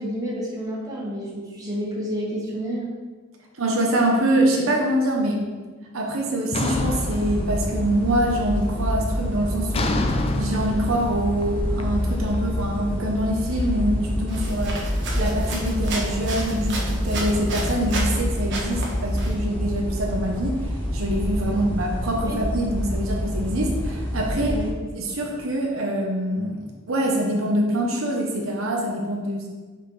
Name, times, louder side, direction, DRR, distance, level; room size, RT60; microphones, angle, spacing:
voice 1, 0.0-2.9 22.3-22.4 24.5-24.7, equal, 20° right, -5 dB, 1.6 m, -30 dB
voice 2, 3.6-5.4 5.9-9.9 10.4-14.8 15.1-24.6 25.0-26.6 26.9-29.5, right 1 dB, 80° right, -1 dB, 1.0 m, -24 dB
sound 1, 6.5-8.1 8.4-8.8 9.7-12.8, left 2 dB, 30° left, 0.4 m, -28 dB
sound 2, 6.7-24.7, equal, 10° left, 1.3 m, -27 dB
sound 3, 14.3-18.2 18.5-19.3, right 2 dB, 60° right, 1.3 m, -33 dB
5.8 x 4.3 x 4.8 m, 1.4 s
head